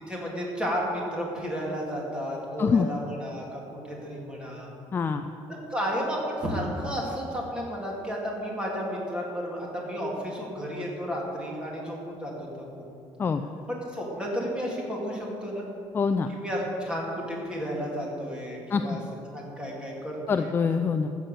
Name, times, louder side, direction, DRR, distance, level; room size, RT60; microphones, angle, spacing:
voice 1, 0.1-4.7 5.5-12.3 12.6-12.9 13.7-15.7 16.3-19.0 19.3-20.5, equal, 10° right, -3 dB, 2.6 m, -32 dB
voice 2, 4.9-5.2 13.2-13.4 15.9-16.3 18.7-19.0 20.3-21.1, left 5 dB, 25° left, 7 dB, 0.4 m, -24 dB
14.0 x 7.5 x 6.9 m, 2.7 s
cardioid pair, 155°, 10 cm